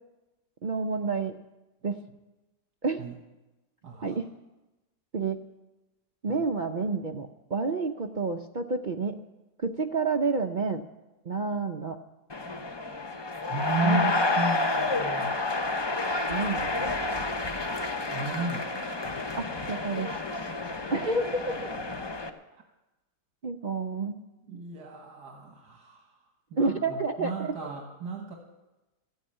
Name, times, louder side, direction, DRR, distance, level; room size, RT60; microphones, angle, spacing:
voice 1, 0.6-1.4 1.8-2.0 2.8-3.0 4.0-4.3 5.1-5.4 6.2-9.1 9.6-10.8 11.2-12.0 13.8-14.0 16.3-16.9 19.4-20.1 20.9-21.3 23.4-24.2 26.6-27.5, right 4 dB, 60° right, 4 dB, 0.5 m, -29 dB
voice 2, 3.8-4.1 6.3-6.5 13.5-15.3 18.1-18.7 24.5-26.1 26.5-28.3, right 3 dB, 80° right, 2 dB, 2.0 m, -34 dB
sound 1, 12.3-22.3, left 2 dB, 40° left, 0.3 m, -30 dB
14.0 x 9.1 x 8.9 m, 1.1 s
omnidirectional pair, 1.7 m